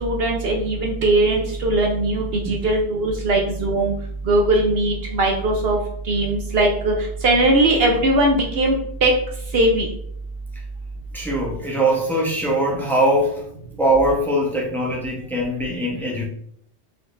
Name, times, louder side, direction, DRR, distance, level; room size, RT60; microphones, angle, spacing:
voice 1, 0.0-3.9 4.2-5.8 6.1-6.9 7.2-9.1 9.5-9.9, right 2 dB, 60° right, 1 dB, 0.9 m, -19 dB
voice 2, 11.1-13.4 13.8-16.3, right 1 dB, ahead, -4 dB, 0.9 m, -21 dB
4.1 x 4.0 x 2.6 m, 0.67 s
omnidirectional pair, 1.2 m